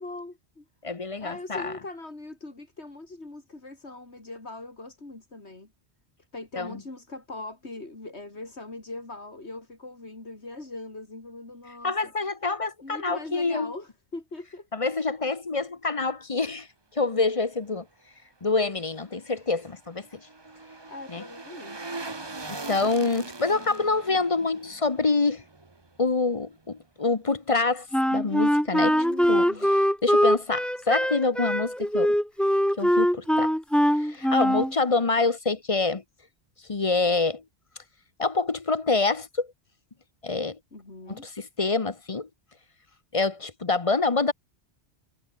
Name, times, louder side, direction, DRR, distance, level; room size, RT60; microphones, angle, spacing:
voice 1, 0.0-0.6 1.2-5.7 6.3-12.1 12.8-14.7 20.9-21.9 28.8-29.7 40.7-41.3, left 2 dB, 80° left, 4.6 m, -41 dB
voice 2, 0.8-1.7 6.5-6.8 11.8-13.7 14.7-17.9 18.4-20.3 21.1-21.2 22.5-25.4 26.0-32.2 32.8-33.5 33.9-36.0 36.6-37.4 38.2-39.5 40.2-40.6 41.1-42.3 43.1-44.3, left 3 dB, 35° left, 1.0 m, -26 dB
sound 1, 19.1-26.3 26.7-26.8, right 3 dB, 25° right, 1.3 m, -41 dB
Wind instrument woodwind instrument, 27.9-34.7, equal, ahead, 0.5 m, -22 dB
omnidirectional pair, 1.1 m